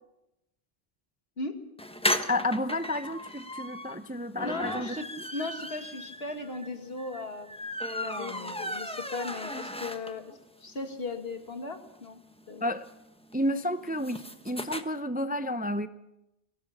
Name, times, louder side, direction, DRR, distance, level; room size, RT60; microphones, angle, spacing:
sound 1, 1.8-10.4 10.8-10.9 11.1-11.2 11.4-14.8, left 1 dB, 5° left, 1.1 m, -36 dB
voice 1, 2.3-5.0 5.4-5.5 12.6-12.9 13.3-15.9, left 1 dB, 10° right, 0.6 m, -31 dB
voice 2, 4.4-5.0 5.3-7.6 8.0-10.3 10.6-12.2 12.5-12.7, left 3 dB, 70° left, 2.3 m, -37 dB
24.0 x 17.0 x 7.2 m
omnidirectional pair, 1.1 m